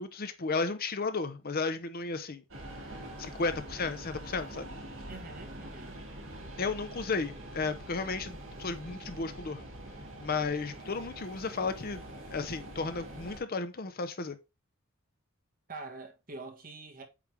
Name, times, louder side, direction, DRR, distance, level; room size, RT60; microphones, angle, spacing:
voice 1, 0.0-2.4 3.2-4.6 6.6-9.6 10.2-12.0 12.3-14.4, left 4 dB, 45° left, 0.7 m, -33 dB
sound 1, 2.5-13.4, right 1 dB, 65° right, 2.2 m, -45 dB
voice 2, 5.1-6.0 15.7-17.0, right 3 dB, 40° right, 1.5 m, -45 dB
8.4 x 3.4 x 3.5 m
head